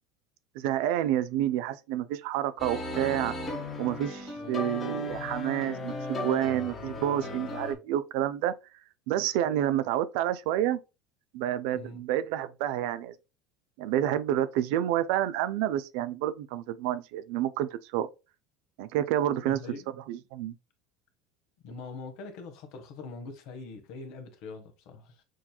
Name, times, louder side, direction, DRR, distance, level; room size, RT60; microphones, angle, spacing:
voice 1, 0.6-3.4 3.8-8.5 9.1-10.8 11.3-13.1 13.8-18.1 18.8-19.6 20.1-20.5, right 12 dB, 70° right, 0.4 m, -29 dB
sound 1, 2.6-7.7, left 2 dB, 30° left, 1.4 m, -36 dB
voice 2, 19.4-19.9 21.6-25.2, left 3 dB, 65° left, 1.1 m, -43 dB
6.3 x 2.7 x 2.2 m
hypercardioid pair, 80°, 0 cm